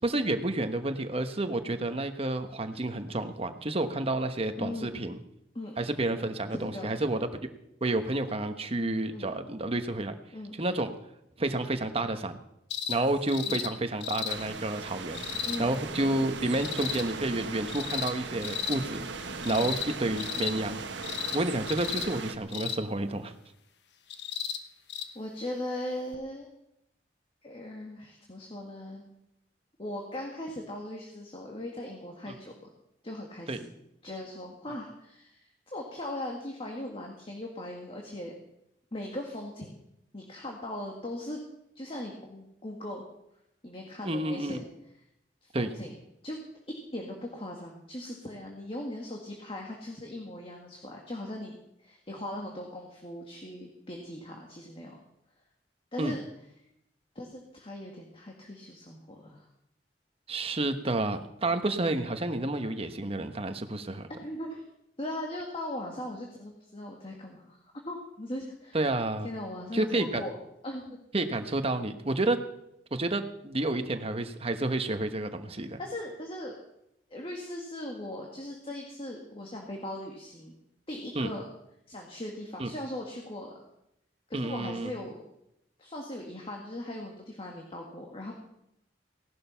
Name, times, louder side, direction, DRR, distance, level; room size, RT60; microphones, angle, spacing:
voice 1, 0.0-5.2 5.8-7.5 7.8-10.2 10.6-10.9 11.4-12.4 12.9-20.8 21.3-23.3 33.5-33.6 44.0-44.6 45.5-45.7 56.0-56.2 60.3-64.1 68.7-69.3 69.7-70.3 71.1-72.4 72.9-75.8 81.1-81.3 82.6-82.7 84.3-84.9, right 2 dB, 35° right, 7 dB, 1.2 m, -30 dB
voice 2, 4.6-4.9 5.6-5.8 6.5-6.9 9.1-9.3 10.3-10.5 13.5-13.7 15.4-15.8 19.5-19.7 25.2-26.5 27.4-29.1 29.8-32.5 33.0-33.8 34.0-38.3 38.9-39.7 40.1-41.4 41.8-43.0 43.6-44.7 45.4-45.9 46.2-46.4 46.9-55.0 55.9-56.2 57.2-59.5 64.2-64.6 65.0-67.6 67.9-68.8 69.2-70.4 70.6-71.0 75.8-76.6 77.1-80.6 80.9-81.4 81.9-83.5 84.3-85.2 85.8-88.3, left 1 dB, 30° left, 0 dB, 2.0 m, -39 dB
sound 1, 12.7-13.0 13.3-13.7 14.0-14.4 15.1-15.6 16.5-17.0 17.7-18.1 18.4-18.8 19.4-19.9 20.2-20.5 21.0-21.4 21.7-22.1 22.5-22.8 24.1-24.6 24.9-25.1 26.1-26.2, left 9 dB, 70° left, 1.2 m, -34 dB
sound 2, 14.3-22.4, right 4 dB, 80° right, 1.4 m, -39 dB
17.5 x 11.5 x 5.8 m, 0.82 s
head